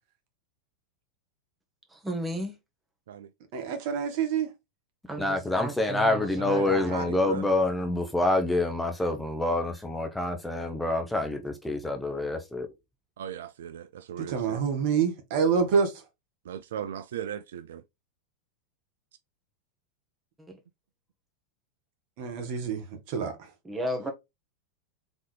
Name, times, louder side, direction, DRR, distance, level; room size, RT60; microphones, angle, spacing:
voice 1, 1.9-2.6 5.1-7.0 23.7-24.1, right 1 dB, 10° right, 1.6 m, -34 dB
voice 2, 3.5-4.5 14.2-15.9 22.2-23.3, right 6 dB, 55° right, 1.6 m, -27 dB
voice 3, 5.2-12.7, left 2 dB, 5° left, 0.9 m, -27 dB
voice 4, 6.4-7.5 13.2-14.6 16.5-17.8, right 10 dB, 75° right, 0.4 m, -38 dB
4.1 x 3.7 x 3.3 m
hypercardioid pair, 100°, 0 cm